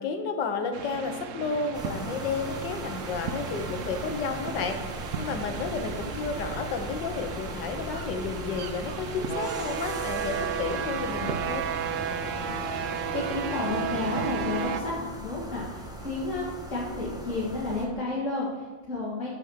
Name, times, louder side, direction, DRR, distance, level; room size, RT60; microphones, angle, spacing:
voice 1, 0.0-11.7, left 5 dB, 70° left, 6 dB, 1.6 m, -32 dB
sound 1, 0.7-14.8, right 7 dB, 80° right, 0.6 m, -34 dB
sound 2, 1.7-17.9, right 1 dB, 5° right, 0.8 m, -39 dB
voice 2, 12.4-19.3, left 2 dB, 40° left, -7 dB, 2.1 m, -32 dB
7.2 x 6.9 x 6.4 m, 1.2 s
omnidirectional pair, 2.1 m